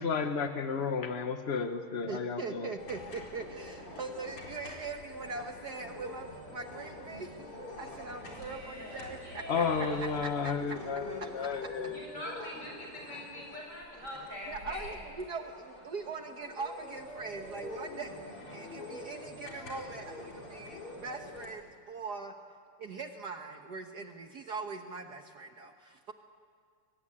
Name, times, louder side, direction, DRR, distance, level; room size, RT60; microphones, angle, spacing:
voice 1, 0.0-2.7 9.5-12.0, left 5 dB, 50° left, 7 dB, 0.7 m, -32 dB
voice 2, 2.1-7.5 7.8-9.6 10.0-11.3 14.5-22.3 22.8-26.1, right 4 dB, 50° right, 5 dB, 1.6 m, -41 dB
sound 1, 2.8-21.5, left 2 dB, 85° left, 5.2 m, -46 dB
voice 3, 8.2-10.1 11.9-14.9, left 1 dB, 35° left, -1 dB, 7.5 m, -44 dB
24.5 x 21.0 x 9.9 m, 2.2 s
omnidirectional pair, 2.4 m